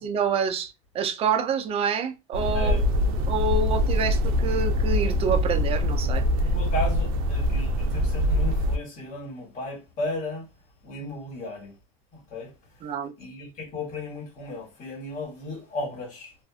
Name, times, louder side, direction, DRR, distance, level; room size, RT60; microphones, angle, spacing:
voice 1, 0.0-6.2 12.8-13.1, right 5 dB, 35° right, 0.5 m, -27 dB
sound 1, 2.3-8.8, equal, 90° right, 0.5 m, -24 dB
voice 2, 6.4-10.5 10.8-11.7 12.1-12.9 13.2-16.3, left 2 dB, 45° left, 1.4 m, -35 dB
2.4 x 2.4 x 2.3 m
supercardioid pair, 120°, 17 cm